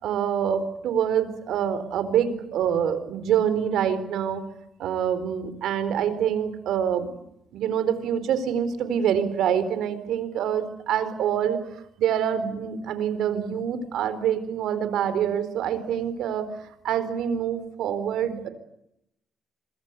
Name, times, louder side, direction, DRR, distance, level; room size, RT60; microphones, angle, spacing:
voice 1, 0.0-4.4 4.8-7.1 7.5-11.6 12.0-16.5 16.8-18.5, right 9 dB, 80° right, 13 dB, 4.3 m, -26 dB
26.0 x 23.0 x 8.3 m, 0.79 s
cardioid pair, 90°, 0 cm